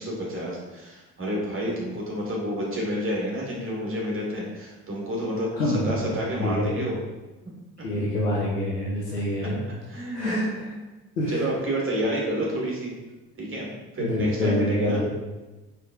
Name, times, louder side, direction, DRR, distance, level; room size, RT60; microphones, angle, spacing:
voice 1, 0.0-7.0 7.4-7.9 9.9-10.4 10.7-10.8 11.3-12.9 13.4-13.7 13.9-15.0, equal, 25° right, -3 dB, 1.3 m, -29 dB
voice 2, 5.5-6.1 6.4-6.8 7.8-9.6 10.1-10.7 11.2-11.4 14.0-15.0, left 1 dB, 90° left, -5 dB, 0.6 m, -26 dB
4.4 x 3.4 x 2.3 m, 1.1 s
figure-of-eight pair, 45°, 46 cm